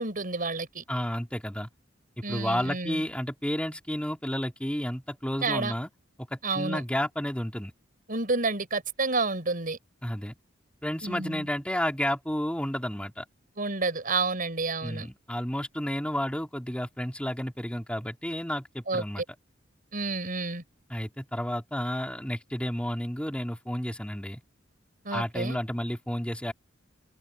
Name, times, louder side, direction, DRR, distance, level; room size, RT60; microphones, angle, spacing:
voice 1, 0.0-0.8 2.2-3.0 5.4-5.7 6.4-6.8 8.1-9.8 11.0-11.5 13.6-15.1 18.9-19.2 19.9-20.6 25.0-25.6, right 3 dB, 45° right, 5.5 m, -30 dB
voice 2, 0.9-1.7 2.3-5.9 6.3-7.7 10.0-10.3 10.8-13.2 14.8-19.2 20.9-24.4 25.1-26.5, equal, 5° left, 2.4 m, -31 dB
open air
head